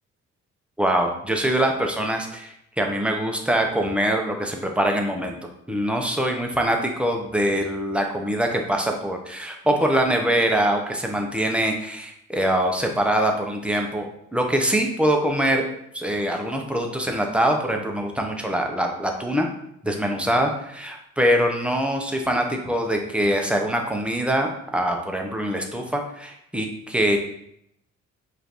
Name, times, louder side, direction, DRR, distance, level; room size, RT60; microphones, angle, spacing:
voice 1, 0.8-5.4 5.7-14.1 14.3-15.6 15.9-19.5 19.8-27.2, right 1 dB, 5° right, 2 dB, 0.6 m, -23 dB
4.9 x 2.6 x 2.9 m, 0.76 s
cardioid pair, 90°, 30 cm